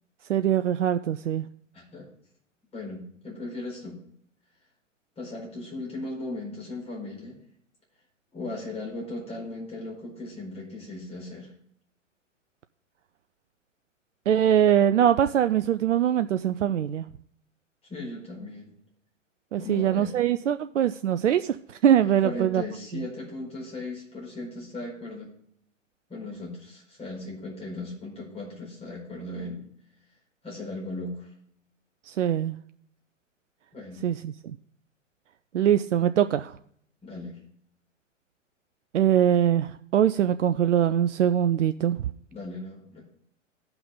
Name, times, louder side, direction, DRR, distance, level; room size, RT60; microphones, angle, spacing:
voice 1, 0.3-1.4 14.3-17.1 19.5-22.6 32.1-32.6 34.0-34.6 35.5-36.6 38.9-42.0, right 10 dB, 70° right, 11 dB, 0.5 m, -23 dB
voice 2, 1.7-2.1 2.7-4.0 5.2-7.4 8.3-11.5 17.9-18.7 19.6-20.1 22.0-25.3 26.1-29.6 30.4-31.3 33.7-34.0 37.0-37.4 42.3-43.0, left 2 dB, 15° left, -3 dB, 4.6 m, -37 dB
15.5 x 5.9 x 3.8 m, 0.66 s
figure-of-eight pair, 105°, 38 cm